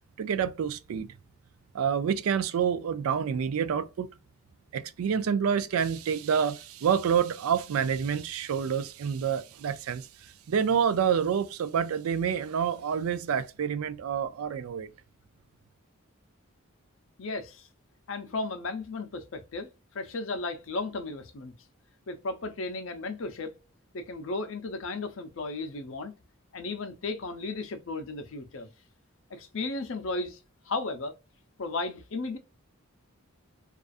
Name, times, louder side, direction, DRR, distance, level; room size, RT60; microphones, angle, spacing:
voice 1, 0.2-1.1 1.7-4.1 4.7-14.9, right 7 dB, 85° right, 0.3 m, -28 dB
voice 2, 17.2-17.7 18.1-21.5 22.1-23.6 23.9-26.1 26.5-28.7 29.3-30.4 30.6-31.1 31.6-32.4, left 3 dB, 65° left, 0.5 m, -35 dB
2.4 x 2.4 x 2.3 m
head